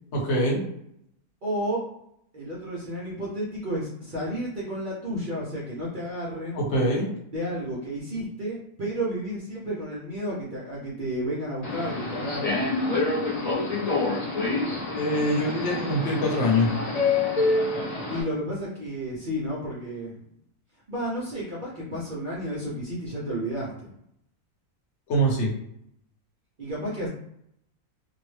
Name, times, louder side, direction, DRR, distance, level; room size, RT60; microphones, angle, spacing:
voice 1, 0.1-0.6 6.5-7.1 14.9-16.7 25.1-25.5, equal, 55° left, -2 dB, 1.0 m, -24 dB
voice 2, 1.4-1.8 2.3-6.7 7.3-12.7 18.1-20.1 20.9-23.9 26.6-27.1, equal, 55° right, -6 dB, 0.5 m, -32 dB
Subway metro underground, 11.6-18.2, left 3 dB, 85° left, 0.3 m, -27 dB
2.6 x 2.1 x 3.1 m, 0.74 s
omnidirectional pair, 1.5 m